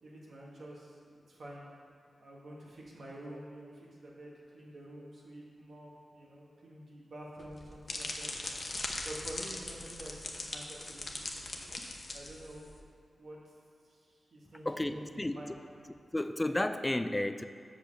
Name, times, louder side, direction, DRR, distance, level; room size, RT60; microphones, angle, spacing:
voice 1, 0.0-1.0 1.3-1.6 2.2-8.3 9.0-11.4 12.1-12.7 13.2-13.4 13.8-15.6, right 1 dB, 75° right, -5 dB, 1.8 m, -48 dB
sound 1, 7.4-12.8, left 2 dB, 50° left, 0.9 m, -40 dB
voice 2, 14.7-15.4 16.1-17.4, left 1 dB, 20° left, 10 dB, 0.4 m, -32 dB
6.2 x 5.3 x 6.8 m, 2.3 s
cardioid pair, 55°, 0 cm